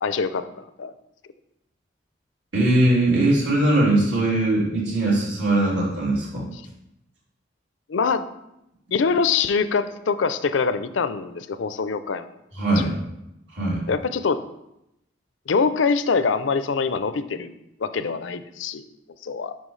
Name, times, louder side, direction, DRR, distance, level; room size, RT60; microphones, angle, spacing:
voice 1, 0.0-0.9 7.9-8.2 8.9-12.3 12.8-12.9 13.9-14.4 15.5-18.9 19.2-19.5, left 5 dB, 90° left, 12 dB, 0.5 m, -24 dB
voice 2, 2.5-6.4 12.5-12.9 13.5-13.8, right 1 dB, 80° right, -6 dB, 3.1 m, -20 dB
9.1 x 5.7 x 3.2 m, 0.86 s
head